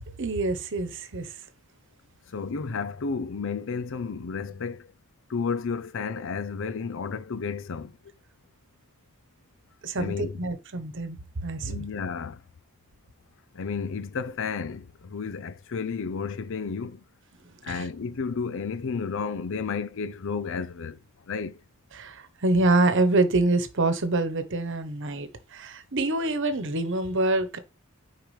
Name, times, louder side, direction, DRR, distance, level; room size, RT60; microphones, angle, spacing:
voice 1, 0.2-1.4 9.8-11.8 17.4-17.8 21.9-27.6, right 2 dB, 60° right, 1.1 m, -26 dB
voice 2, 2.3-4.9 5.3-8.0 10.0-10.4 11.6-12.4 13.5-17.0 17.6-21.6, left 5 dB, 65° left, 0.5 m, -32 dB
9.5 x 4.8 x 3.3 m
head